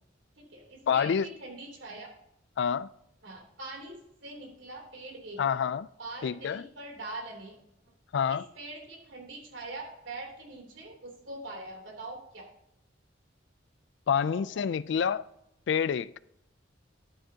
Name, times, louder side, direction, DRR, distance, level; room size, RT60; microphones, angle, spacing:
voice 1, 0.4-2.1 3.2-5.4 6.0-7.5 8.3-12.4 14.2-14.6 15.0-15.1, right 2 dB, 90° right, 3.2 m, -43 dB
voice 2, 0.9-1.3 2.6-2.9 5.4-5.9 6.2-6.7 8.1-8.4 14.1-15.3 15.7-16.1, left 7 dB, 65° left, 0.3 m, -27 dB
11.5 x 8.8 x 2.8 m
head